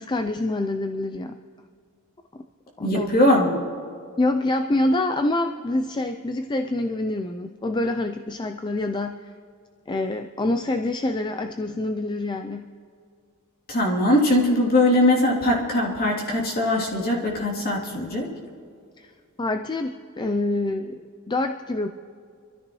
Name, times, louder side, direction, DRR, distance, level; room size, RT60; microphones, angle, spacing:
voice 1, 0.0-1.4 2.8-3.1 4.2-9.3 9.9-12.7 19.0-19.1 19.4-21.0 21.3-21.9, left 2 dB, 20° left, 6 dB, 0.4 m, -26 dB
voice 2, 2.8-3.6 13.7-18.3, left 1 dB, 45° left, -3 dB, 3.0 m, -21 dB
26.0 x 13.5 x 3.1 m, 2.3 s
head